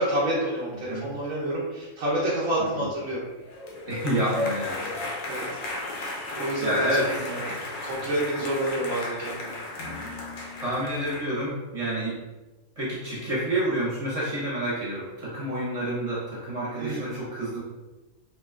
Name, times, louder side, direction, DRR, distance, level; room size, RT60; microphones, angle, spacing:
voice 1, 0.0-3.3 5.3-5.6 6.3-7.0 7.3-7.4 7.8-9.6 16.8-17.1, right 1 dB, 80° right, -7 dB, 1.1 m, -28 dB
voice 2, 2.6-2.9 3.9-4.9 6.6-7.2 7.5-7.6 10.6-12.2 12.8-17.6, right 1 dB, 30° right, -7 dB, 0.9 m, -29 dB
sound 1, 3.4-11.2, left 2 dB, 75° left, 1.0 m, -34 dB
3.0 x 2.9 x 2.3 m, 1.1 s
omnidirectional pair, 1.4 m